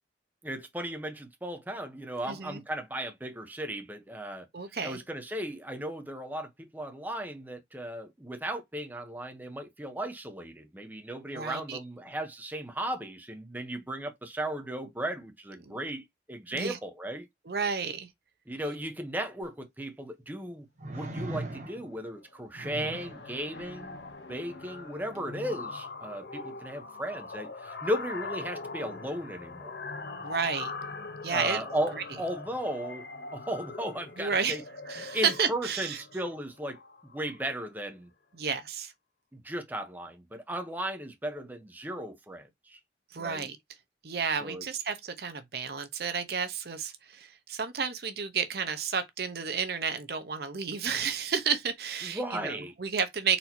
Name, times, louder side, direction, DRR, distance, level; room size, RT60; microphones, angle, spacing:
voice 1, 0.4-4.5 4.8-17.3 18.5-24.0 24.3-29.8 31.3-33.1 33.3-34.6 34.9-36.8 37.1-38.1 39.3-42.8 43.2-43.5 44.3-44.6 52.0-52.7, right 1 dB, 10° right, 0.7 m, -36 dB
voice 2, 2.2-2.6 4.5-5.0 11.3-11.8 15.6-15.8 16.5-16.8 17.5-18.1 30.2-30.7 31.2-31.6 34.2-34.6 34.9-36.0 38.4-38.9 43.1-43.6 44.0-53.4, right 6 dB, 60° right, 0.7 m, -31 dB
sound 1, 19.4-19.5 20.8-22.0 22.5-23.2 25.1-25.3, right 1 dB, 45° right, 1.0 m, -38 dB
sound 2, 21.5-21.8 22.2-22.4 22.7-37.6, left 3 dB, 65° left, 0.7 m, -42 dB
sound 3, 22.8-25.7, left 3 dB, 85° left, 1.0 m, -49 dB
4.2 x 2.7 x 4.3 m
head